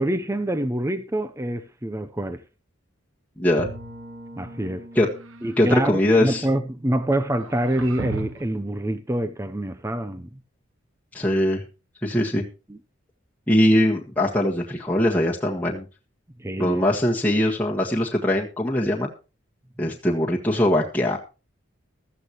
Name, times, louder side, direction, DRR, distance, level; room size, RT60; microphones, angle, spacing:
voice 1, 0.0-2.4 4.4-4.9 5.4-10.4 12.7-12.8 16.4-16.8, right 1 dB, 15° right, 0.7 m, -26 dB
voice 2, 3.4-3.7 4.9-5.1 5.6-6.4 11.1-11.6 12.0-12.5 13.5-15.8 16.6-19.1 19.8-21.2, left 1 dB, 5° left, 1.6 m, -21 dB
Bowed string instrument, 3.6-8.4, right 1 dB, 45° right, 2.1 m, -43 dB
sound 1, 5.1-5.9 7.4-8.6, right 3 dB, 75° right, 1.1 m, -36 dB
15.5 x 13.5 x 3.0 m
head